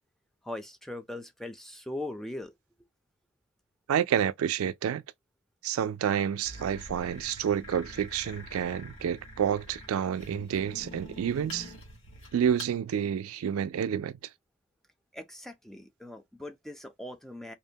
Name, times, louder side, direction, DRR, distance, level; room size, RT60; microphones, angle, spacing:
voice 1, 0.4-2.5 15.1-17.5, left 1 dB, ahead, 0.3 m, -40 dB
voice 2, 3.9-5.0 5.6-11.7 12.3-14.2, right 8 dB, 85° right, 0.3 m, -29 dB
sound 1, 6.4-12.7, left 1 dB, 70° left, 1.3 m, -46 dB
2.6 x 2.0 x 2.7 m
head